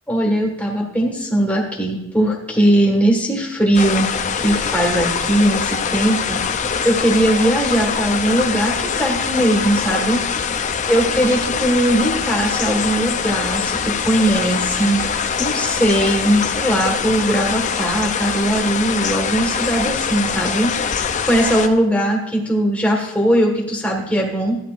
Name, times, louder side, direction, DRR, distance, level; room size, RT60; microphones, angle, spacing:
voice 1, 0.1-4.1 4.4-10.6 10.9-15.0 15.4-24.6, right 1 dB, 5° left, -1 dB, 1.6 m, -19 dB
sound 1, 3.7-21.7, left 6 dB, 35° left, 0.5 m, -23 dB
13.5 x 10.0 x 2.5 m, 0.95 s
head